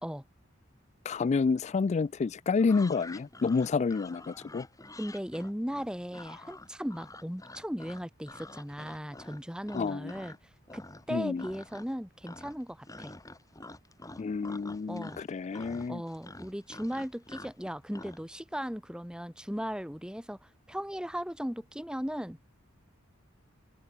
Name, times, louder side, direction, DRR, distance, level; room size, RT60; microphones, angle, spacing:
voice 1, 1.1-4.7 9.7-10.1 11.1-11.5 14.2-16.0, left 4 dB, 35° left, 0.3 m, -29 dB
sound 1, 2.6-10.4 10.7-11.1 11.4-12.0 12.2-18.2, left 2 dB, 15° left, 3.4 m, -48 dB
voice 2, 5.0-10.3 10.7-13.1 14.9-15.2 15.9-22.4, equal, 5° right, 2.9 m, -37 dB
open air
head